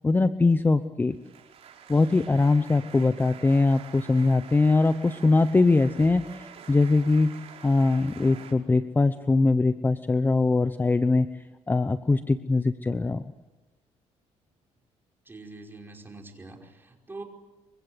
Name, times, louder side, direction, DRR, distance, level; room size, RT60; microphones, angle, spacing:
voice 1, 0.0-1.2 1.9-7.3 7.6-11.3 11.7-13.2, left 3 dB, 15° left, 12 dB, 0.8 m, -22 dB
sound 1, 1.1-8.5, right 8 dB, 55° right, 4.9 m, -47 dB
voice 2, 15.2-17.2, right 2 dB, 15° right, 1 dB, 5.2 m, -44 dB
27.5 x 24.0 x 8.0 m, 1.1 s
cardioid pair, 115°, 12 cm